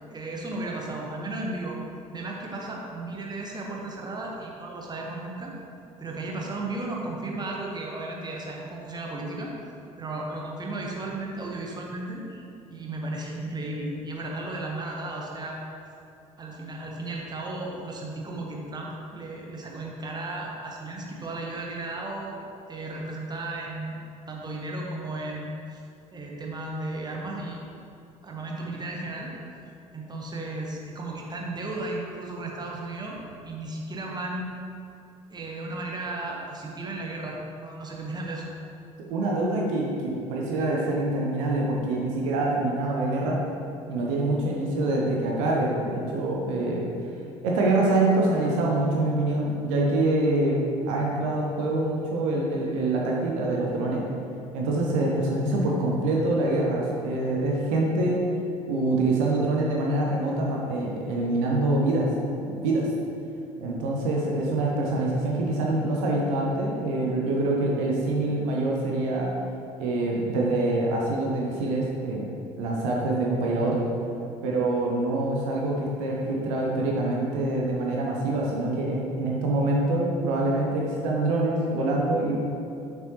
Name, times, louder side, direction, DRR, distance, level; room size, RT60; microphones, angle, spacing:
voice 1, 0.1-1.8 2.1-5.5 6.0-9.5 10.0-12.4 12.7-15.6 16.4-22.4 22.7-24.0 24.3-25.8 26.1-27.6 28.2-29.3 29.9-34.5 35.3-38.5, right 2 dB, 25° right, -1 dB, 1.2 m, -34 dB
voice 2, 39.1-43.4 43.9-46.9 47.4-54.0 54.5-58.3 58.7-62.1 62.4-62.9 63.6-69.3 69.8-72.3 72.6-73.9 74.4-82.4, right 2 dB, 65° right, -2 dB, 0.9 m, -25 dB
6.8 x 6.1 x 3.0 m, 2.6 s
figure-of-eight pair, 55°, 18 cm